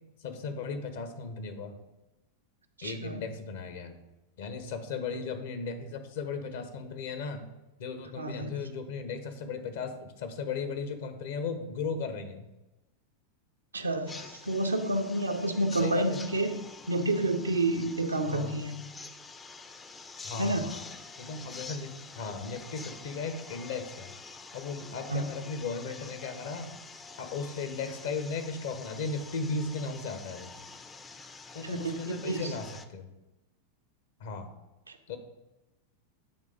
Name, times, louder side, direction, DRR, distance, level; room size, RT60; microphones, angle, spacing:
voice 1, 0.2-1.8 2.8-4.0 4.4-7.5 7.8-12.5 15.8-16.2 18.2-18.5 20.2-20.8 21.2-24.1 24.5-26.7 27.2-30.5 31.5-33.1 34.2-34.5 35.1-35.2, left 4 dB, 55° left, 7 dB, 0.9 m, -36 dB
voice 2, 2.8-3.2 5.1-5.2 8.2-8.6 13.7-16.6 16.9-18.9 20.4-20.7 25.1-25.3 31.6-32.5 34.9-35.0, right 2 dB, 80° right, 6 dB, 0.5 m, -30 dB
sound 1, 14.1-32.9, left 4 dB, 15° left, 0.4 m, -47 dB
8.6 x 3.4 x 5.0 m, 0.99 s
figure-of-eight pair, 90°, 0 cm